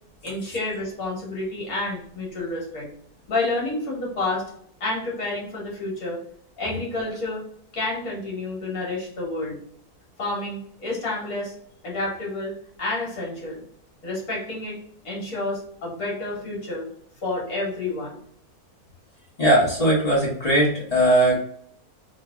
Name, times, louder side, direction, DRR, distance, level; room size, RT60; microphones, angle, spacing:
voice 1, 0.2-2.9 3.3-4.5 4.8-6.2 6.6-7.4 7.7-9.6 10.2-11.5 11.8-13.6 14.0-14.8 15.0-16.9 17.2-18.2, left 2 dB, 70° left, -2 dB, 1.8 m, -29 dB
voice 2, 19.4-21.4, right 1 dB, 25° left, -5 dB, 1.4 m, -19 dB
3.3 x 2.8 x 2.3 m, 0.64 s
omnidirectional pair, 1.6 m